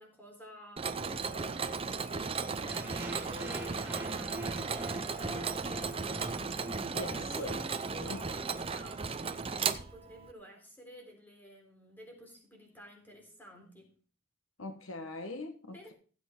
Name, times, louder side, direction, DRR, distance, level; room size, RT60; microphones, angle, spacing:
voice 1, 0.0-6.6 7.0-13.9 15.7-15.9, equal, 10° left, 3.8 m, -52 dB
Mechanisms, 0.8-10.3, right 5 dB, 25° right, 0.6 m, -36 dB
sound 1, 2.7-8.7, right 1 dB, 10° right, 2.1 m, -43 dB
voice 2, 6.9-7.6 8.0-8.2 14.6-15.9, left 2 dB, 70° left, 1.3 m, -41 dB
16.0 x 8.0 x 3.8 m
head